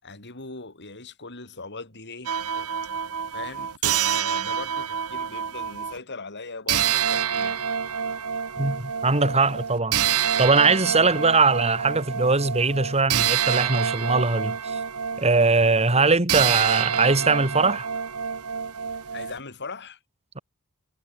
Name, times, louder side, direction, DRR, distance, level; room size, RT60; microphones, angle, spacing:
voice 1, 0.0-2.7 3.3-7.6 19.1-20.0, left 3 dB, 55° left, 6.5 m, -39 dB
sound 1, 2.2-6.0 6.7-19.4, right 8 dB, 90° right, 1.2 m, -27 dB
voice 2, 8.6-14.8 15.2-17.9, right 3 dB, 30° right, 2.6 m, -21 dB
head